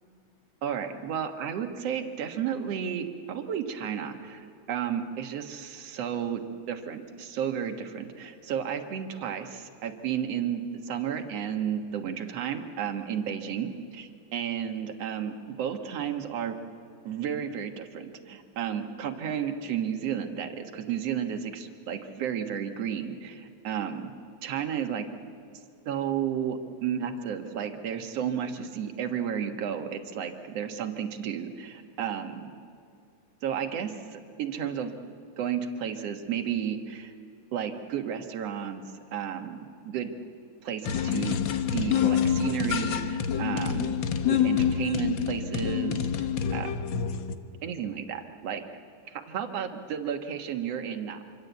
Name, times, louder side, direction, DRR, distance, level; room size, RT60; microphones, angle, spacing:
voice 1, 0.6-16.6 17.0-24.1 24.4-25.1 25.9-32.5 33.4-34.9 35.4-37.1 37.5-40.1 40.6-44.0 44.3-46.7 47.6-48.6 49.1-51.2, right 8 dB, 60° right, 5 dB, 2.4 m, -32 dB
sound 1, 40.8-47.4, left 8 dB, 70° left, 1.1 m, -27 dB
26.0 x 25.5 x 8.2 m, 2.4 s
omnidirectional pair, 3.4 m